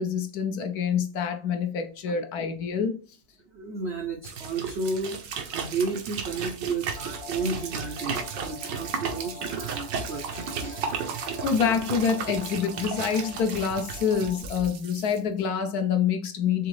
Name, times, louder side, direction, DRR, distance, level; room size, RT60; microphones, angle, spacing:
voice 1, 0.0-3.0 11.4-16.7, left 7 dB, 70° left, 1.0 m, -26 dB
voice 2, 3.5-11.1, right 3 dB, 65° right, 0.6 m, -33 dB
sound 1, 4.2-15.2, right 6 dB, 90° right, 1.5 m, -34 dB
sound 2, 6.9-14.4, equal, 40° left, 0.4 m, -44 dB
4.8 x 3.5 x 3.1 m
omnidirectional pair, 1.9 m